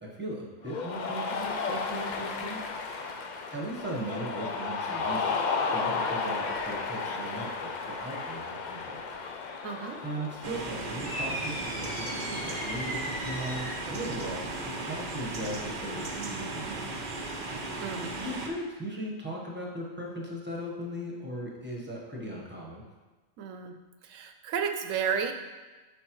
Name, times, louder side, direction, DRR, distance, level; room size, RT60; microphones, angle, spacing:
voice 1, 0.0-2.6 3.5-5.4 5.7-7.5 7.9-9.0 10.0-17.0 18.2-22.8, right 1 dB, 10° right, -3 dB, 1.1 m, -38 dB
Cheering, 0.7-15.5, left 4 dB, 60° left, 0.5 m, -35 dB
voice 2, 9.6-10.0 17.8-18.1 23.4-23.8 24.0-25.3, right 7 dB, 80° right, 7 dB, 1.0 m, -32 dB
sound 1, 10.4-18.5, right 2 dB, 45° right, 0.7 m, -36 dB
sound 2, 11.0-13.9, equal, 90° left, 2.0 m, -37 dB
7.7 x 5.7 x 3.1 m, 1.2 s
omnidirectional pair, 1.3 m